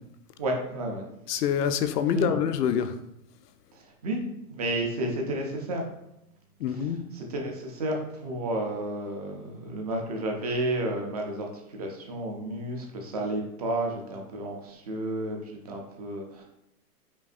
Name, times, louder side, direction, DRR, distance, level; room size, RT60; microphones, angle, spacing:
voice 1, 0.4-1.1 2.1-2.4 3.7-5.8 6.7-16.4, right 1 dB, 30° right, 1 dB, 0.4 m, -32 dB
voice 2, 1.3-2.9 6.6-7.0, left 8 dB, 90° left, 9 dB, 0.6 m, -26 dB
5.2 x 2.6 x 2.5 m, 0.84 s
hypercardioid pair, 150°, 46 cm